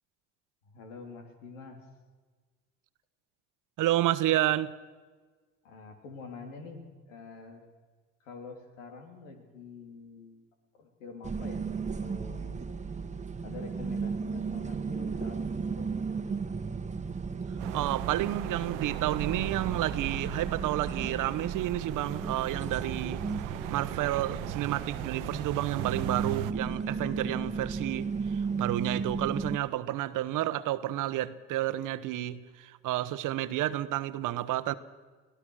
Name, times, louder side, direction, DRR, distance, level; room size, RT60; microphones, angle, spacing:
voice 1, 0.6-1.8 5.6-7.6 8.2-10.4 10.7-11.7 12.0-12.6 13.4-16.1, left 4 dB, 85° left, 3.5 m, -46 dB
voice 2, 3.8-4.7 17.7-34.7, right 14 dB, 60° right, 1.1 m, -30 dB
sound 1, 11.2-29.6, right 5 dB, 20° right, 1.4 m, -35 dB
sound 2, 17.6-26.5, right 14 dB, 80° right, 0.9 m, -38 dB
24.5 x 17.0 x 6.5 m
hypercardioid pair, 75°, 36 cm